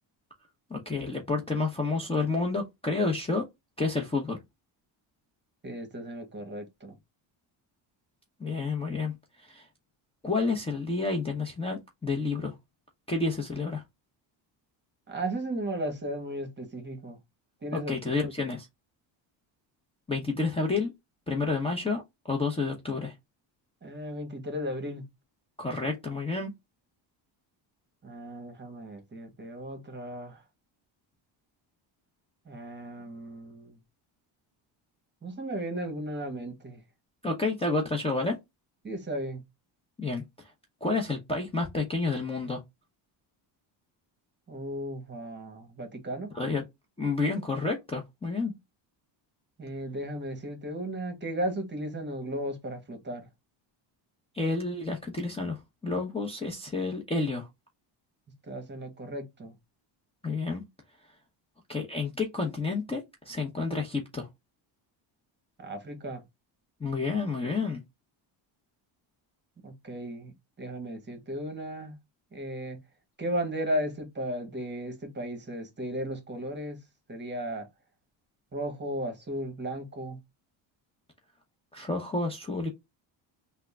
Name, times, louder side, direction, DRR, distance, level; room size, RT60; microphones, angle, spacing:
voice 1, 0.7-3.4 3.8-4.4 8.4-9.1 9.4-9.7 10.2-12.6 13.1-13.8 17.7-18.7 20.1-20.9 21.3-22.0 22.3-23.1 25.6-26.5 37.2-38.4 40.0-40.5 40.8-42.6 46.3-46.6 47.0-48.5 54.3-57.5 60.2-60.6 61.7-64.3 66.8-67.8 81.7-82.7, left 3 dB, 10° left, 0.8 m, -30 dB
voice 2, 5.6-7.0 15.1-17.2 17.6-18.3 23.8-25.0 28.0-30.4 32.5-33.8 35.2-36.8 38.8-39.4 44.5-46.3 49.6-53.3 58.5-59.5 65.6-66.2 69.6-72.0 72.3-72.8 73.2-76.8 77.1-77.7 78.5-80.2, right 1 dB, 25° right, 1.3 m, -35 dB
3.5 x 2.2 x 3.5 m
cardioid pair, 120°, 47 cm